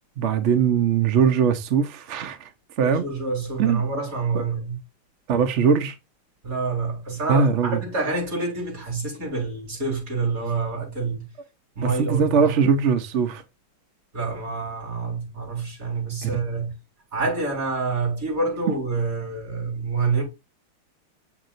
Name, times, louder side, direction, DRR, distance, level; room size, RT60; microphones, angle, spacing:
voice 1, 0.2-2.5 2.8-3.1 3.6-3.8 4.3-4.4 5.3-5.9 7.3-7.8 11.8-13.4 16.2-16.4, right 6 dB, 70° right, 0.6 m, -21 dB
voice 2, 2.8-4.8 6.4-11.3 11.8-12.5 14.1-16.7 17.1-20.2, right 4 dB, 40° right, 4.8 m, -27 dB
7.6 x 6.1 x 2.5 m
omnidirectional pair, 2.3 m